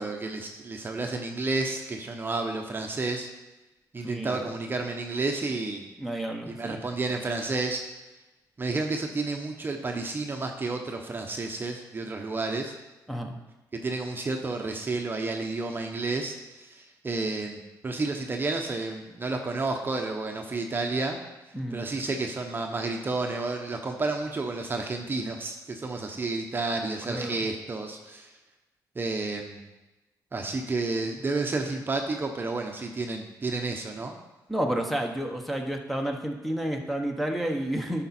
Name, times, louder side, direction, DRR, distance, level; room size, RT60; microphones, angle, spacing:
voice 1, 0.0-3.3 3.9-5.9 6.5-7.8 8.6-12.7 13.7-21.2 21.7-28.3 28.9-29.6 30.3-34.2, right 3 dB, 30° right, 3 dB, 0.9 m, -31 dB
voice 2, 4.0-4.5 6.0-6.8 13.1-13.4 21.5-21.8 27.1-27.4 34.5-38.0, right 1 dB, ahead, 1 dB, 1.2 m, -30 dB
10.5 x 5.9 x 4.3 m, 1.1 s
cardioid pair, 90°, 7 cm